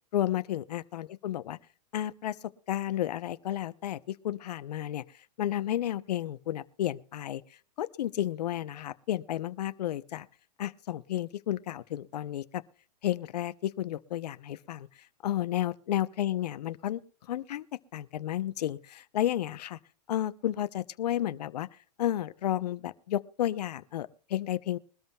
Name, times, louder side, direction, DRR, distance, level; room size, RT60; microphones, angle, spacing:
voice 1, 0.1-1.6 1.9-2.4 2.7-5.0 5.4-7.4 7.8-10.3 10.6-12.6 13.0-14.9 15.2-17.0 17.3-17.6 17.9-19.8 20.1-21.7 22.0-24.8, left 12 dB, 70° left, 0.8 m, -32 dB
22.0 x 13.0 x 2.3 m
hypercardioid pair, 130°, 21 cm